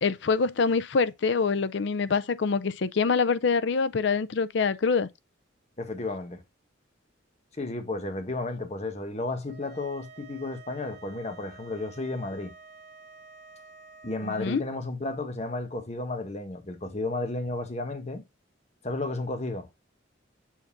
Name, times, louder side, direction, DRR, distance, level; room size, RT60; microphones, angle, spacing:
voice 1, 0.0-5.1 14.2-14.6, left 5 dB, 60° left, 0.5 m, -25 dB
voice 2, 5.8-6.4 7.6-12.5 14.0-18.2 18.8-19.7, left 2 dB, 35° left, 1.1 m, -33 dB
sound 1, 9.5-14.6, right 4 dB, 70° right, 1.7 m, -50 dB
7.4 x 2.6 x 5.6 m
head